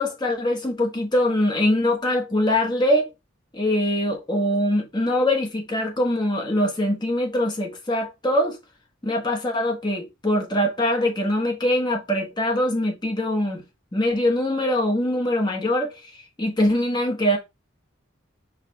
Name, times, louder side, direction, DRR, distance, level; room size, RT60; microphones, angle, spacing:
voice 1, 0.0-3.1 3.5-8.6 9.0-13.6 13.9-15.9 16.4-17.4, left 1 dB, 20° left, 1.1 m, -23 dB
4.9 x 2.4 x 4.5 m
head